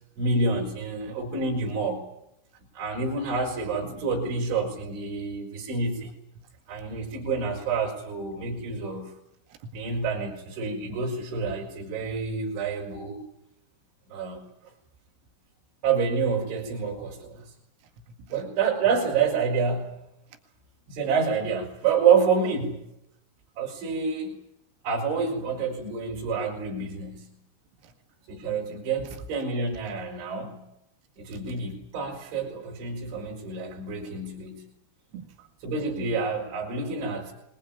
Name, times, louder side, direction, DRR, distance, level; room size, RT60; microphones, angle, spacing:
voice 1, 0.2-2.1 2.7-6.1 6.7-9.2 9.7-13.2 14.1-14.4 15.8-17.5 18.3-20.1 20.9-22.9 23.6-24.3 24.8-27.3 28.3-30.7 31.2-34.7 35.6-37.3, right 5 dB, 70° right, -2 dB, 6.7 m, -28 dB
voice 2, 9.5-9.8 17.8-18.4 20.3-20.4 27.8-28.3 29.0-29.3 31.3-31.6 35.1-35.5, right 3 dB, 85° right, 6 dB, 4.6 m, -46 dB
23.0 x 22.0 x 9.0 m, 0.81 s
omnidirectional pair, 5.7 m